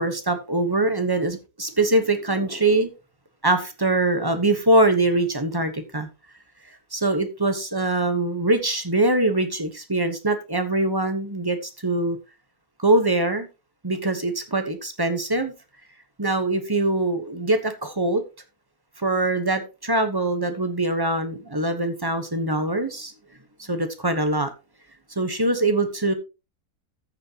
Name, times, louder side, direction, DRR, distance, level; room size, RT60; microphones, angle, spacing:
voice 1, 0.0-2.9 3.4-6.1 6.9-11.6 11.8-12.2 12.8-13.5 13.8-15.5 16.2-18.2 19.0-23.1 23.6-24.5 25.2-26.1, right 2 dB, 15° right, 0.9 m, -23 dB
14.0 x 6.6 x 2.9 m
omnidirectional pair, 1.7 m